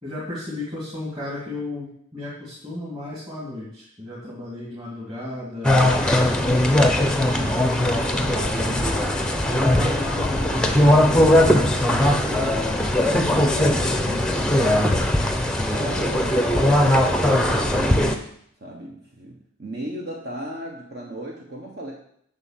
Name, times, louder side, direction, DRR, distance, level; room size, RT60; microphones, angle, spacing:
voice 1, 0.0-8.9 9.5-12.7 12.9-14.5, left 2 dB, 25° right, -7 dB, 2.6 m, -34 dB
sound 1, 5.6-18.1, left 1 dB, 5° left, 0.8 m, -19 dB
voice 2, 15.7-18.1 18.6-21.9, right 1 dB, 45° right, -1 dB, 1.3 m, -35 dB
8.1 x 5.8 x 7.5 m, 0.68 s
head